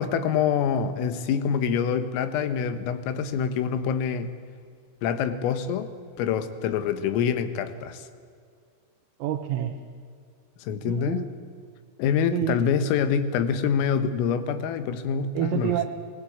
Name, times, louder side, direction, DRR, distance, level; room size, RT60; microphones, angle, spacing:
voice 1, 0.0-4.3 5.0-5.9 6.2-8.1 10.6-11.2 12.0-15.8, left 7 dB, 85° left, 11 dB, 4.0 m, -26 dB
voice 2, 9.2-9.8 10.8-11.3 12.3-12.7 15.4-15.9, right 10 dB, 85° right, 4 dB, 4.0 m, -28 dB
29.5 x 19.5 x 8.7 m, 2.2 s
omnidirectional pair, 5.9 m